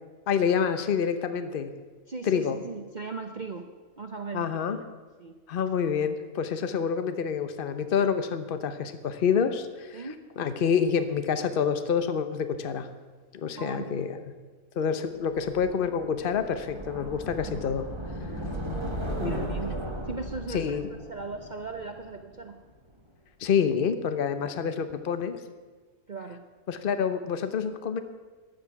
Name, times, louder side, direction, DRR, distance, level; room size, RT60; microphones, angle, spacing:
voice 1, 0.3-1.7 2.2-2.6 4.3-4.8 5.5-10.1 10.4-12.9 13.3-14.2 14.7-17.9 18.4-18.5 19.2-19.5 20.5-20.8 23.4-25.4 26.7-28.0, left 7 dB, 45° left, 9 dB, 1.0 m, -27 dB
voice 2, 2.1-3.7 4.0-4.6 5.2-5.3 9.9-10.2 13.6-13.9 19.1-19.8 20.1-22.6 26.1-26.4, right 4 dB, 40° right, 5 dB, 0.8 m, -38 dB
sound 1, 15.3-22.4, right 1 dB, 20° right, 1.5 m, -36 dB
15.0 x 10.5 x 5.9 m, 1.3 s
omnidirectional pair, 1.5 m